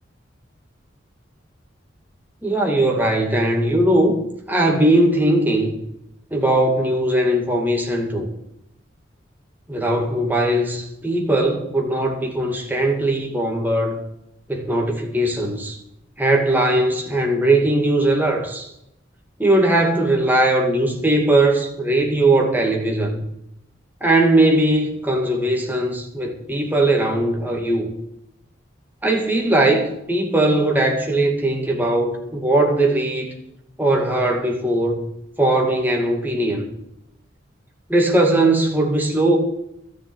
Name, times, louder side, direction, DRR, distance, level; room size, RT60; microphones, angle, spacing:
voice 1, 2.4-4.2 4.5-5.8 6.3-8.3 9.7-14.0 14.5-15.8 16.2-18.7 19.4-23.2 24.0-27.9 29.0-33.3 33.8-35.0 35.4-36.7 37.9-39.4, right 1 dB, 10° right, 1 dB, 2.1 m, -19 dB
13.0 x 7.0 x 9.4 m, 0.82 s
head